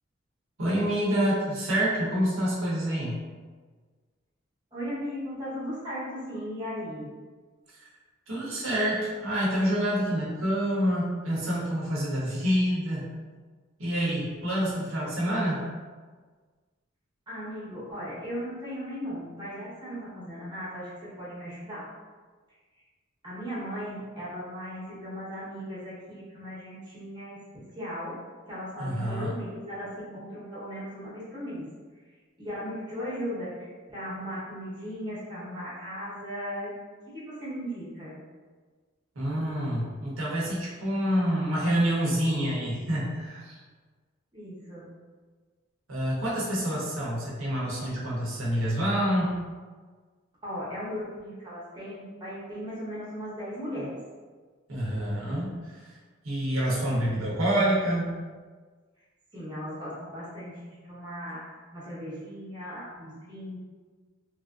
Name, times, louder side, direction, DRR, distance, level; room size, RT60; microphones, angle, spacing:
voice 1, 0.6-3.2 7.8-7.9 8.3-13.1 13.8-15.7 28.8-29.3 39.2-43.5 45.9-49.4 54.7-55.8 56.2-58.1, equal, 80° right, -6 dB, 0.8 m, -27 dB
voice 2, 4.7-7.1 17.3-21.9 23.2-28.1 28.5-31.6 32.4-36.8 37.1-38.2 44.3-44.9 50.4-54.0 59.3-63.6, equal, 20° right, -9 dB, 0.9 m, -37 dB
3.0 x 2.5 x 2.3 m, 1.4 s
head